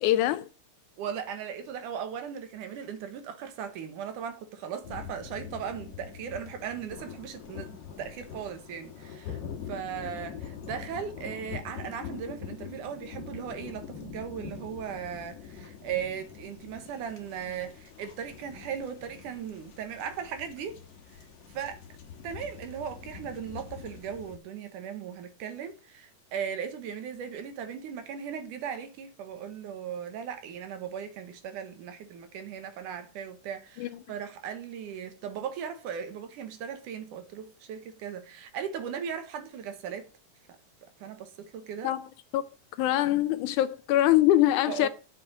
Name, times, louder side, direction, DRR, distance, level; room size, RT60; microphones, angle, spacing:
voice 1, 0.0-0.5 33.8-33.9 41.8-42.0 42.3-42.4 42.8-44.9, left 14 dB, 80° left, 1.9 m, -23 dB
voice 2, 1.0-7.7 8.0-9.4 9.7-20.8 21.1-21.2 21.5-21.8 22.2-40.1 41.0-41.9 44.7-44.9, right 8 dB, 75° right, 2.7 m, -37 dB
sound 1, 4.8-24.4, left 7 dB, 50° left, 2.4 m, -44 dB
7.9 x 5.9 x 7.2 m
omnidirectional pair, 3.8 m